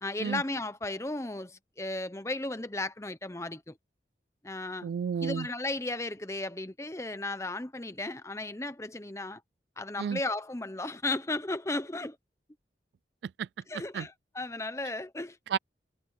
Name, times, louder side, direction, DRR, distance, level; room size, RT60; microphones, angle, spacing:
voice 1, 0.0-3.8 4.4-4.9 5.2-9.4 9.8-12.2 13.7-15.4, left 2 dB, 15° left, 0.9 m, -35 dB
voice 2, 4.8-5.5 10.0-10.2 13.4-13.5 13.9-14.1 15.5-15.6, right 7 dB, 75° right, 0.3 m, -31 dB
head